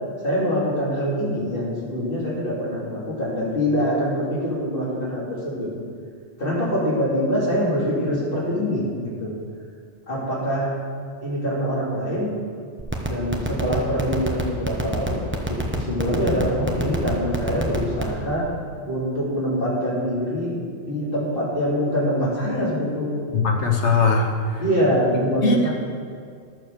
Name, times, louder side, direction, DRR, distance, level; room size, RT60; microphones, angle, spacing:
voice 1, 0.2-5.7 6.4-9.3 10.1-10.7 11.2-12.3 13.0-15.2 15.5-18.5 18.9-20.6 20.9-23.2 24.6-25.7, equal, 55° left, -7 dB, 3.5 m, -24 dB
sound 1, 12.8-18.2, right 2 dB, 10° right, 1.1 m, -25 dB
voice 2, 23.3-24.3 25.4-25.7, left 3 dB, 90° left, 1 dB, 1.6 m, -19 dB
11.5 x 6.8 x 6.9 m, 2.2 s
omnidirectional pair, 1.1 m